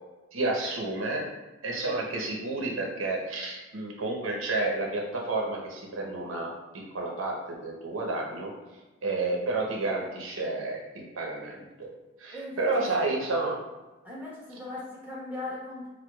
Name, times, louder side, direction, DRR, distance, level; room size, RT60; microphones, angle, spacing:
voice 1, 0.3-1.2 1.6-8.5 9.0-11.9 12.2-13.6, right 2 dB, 90° right, -1 dB, 0.7 m, -30 dB
voice 2, 12.3-13.1 14.0-15.9, left 2 dB, 10° right, -6 dB, 1.0 m, -38 dB
4.5 x 2.2 x 2.2 m, 1.1 s
head